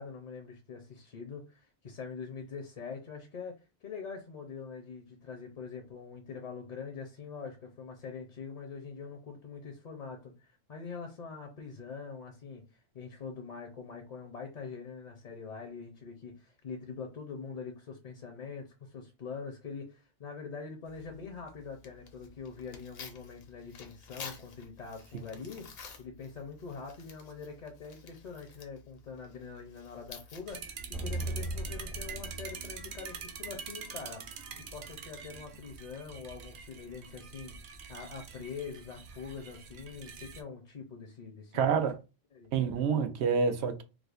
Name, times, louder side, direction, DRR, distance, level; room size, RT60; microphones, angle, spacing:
voice 1, 0.0-25.7 26.0-37.5 37.9-41.7 42.3-42.5, left 5 dB, 50° left, 0.6 m, -44 dB
Tearing, 20.8-31.6, left 5 dB, 70° left, 0.9 m, -52 dB
sound 1, 30.5-40.4, right 5 dB, 60° right, 0.6 m, -45 dB
sound 2, 30.9-33.6, right 1 dB, 5° right, 0.5 m, -38 dB
voice 2, 41.5-42.0 42.5-43.8, right 6 dB, 85° right, 0.9 m, -27 dB
4.8 x 2.1 x 2.4 m
omnidirectional pair, 1.1 m